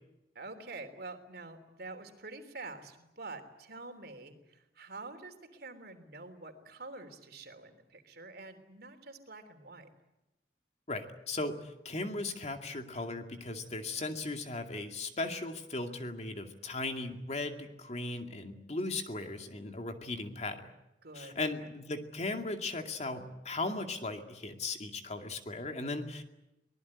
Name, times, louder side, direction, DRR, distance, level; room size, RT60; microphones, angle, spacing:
voice 1, 0.3-9.9 21.0-21.7, right 3 dB, 60° right, 7 dB, 3.4 m, -47 dB
voice 2, 10.9-20.7 21.1-26.2, left 2 dB, 40° left, 5 dB, 2.3 m, -37 dB
24.0 x 20.0 x 9.8 m, 0.94 s
head